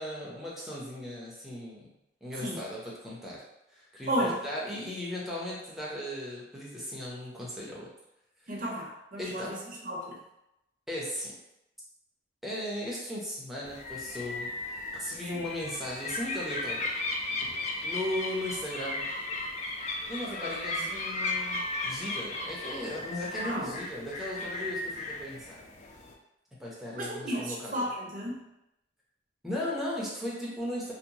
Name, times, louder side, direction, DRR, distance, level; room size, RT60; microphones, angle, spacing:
voice 1, 0.0-1.9 2.2-3.4 3.7-7.9 8.4-8.5 9.2-9.5 10.9-11.3 12.4-14.5 14.9-16.8 17.8-19.1 20.1-25.6 26.6-27.9 29.4-30.9, left 1 dB, ahead, -6 dB, 0.6 m, -37 dB
voice 2, 4.1-4.4 8.5-9.6 9.8-10.2 20.4-20.8 23.3-23.8 26.9-28.4, equal, 45° right, -2 dB, 0.6 m, -33 dB
sound 1, 13.7-26.1, left 2 dB, 40° left, 0.3 m, -35 dB
2.8 x 2.1 x 2.7 m, 0.88 s
head